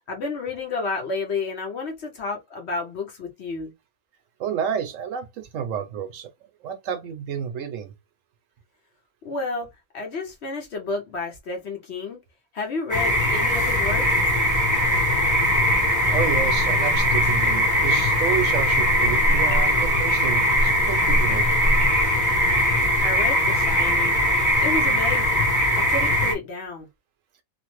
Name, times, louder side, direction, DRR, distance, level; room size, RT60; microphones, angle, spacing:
voice 1, 0.1-3.7 9.2-9.7 9.9-12.2 12.5-14.1 23.0-24.1 24.6-25.4 25.7-26.9, left 3 dB, 55° left, 1.0 m, -31 dB
voice 2, 4.4-6.3 6.6-7.9 16.1-21.5, right 8 dB, 70° right, 0.9 m, -30 dB
sound 1, 12.9-26.3, equal, 15° left, 0.9 m, -20 dB
3.1 x 2.0 x 3.0 m
omnidirectional pair, 1.5 m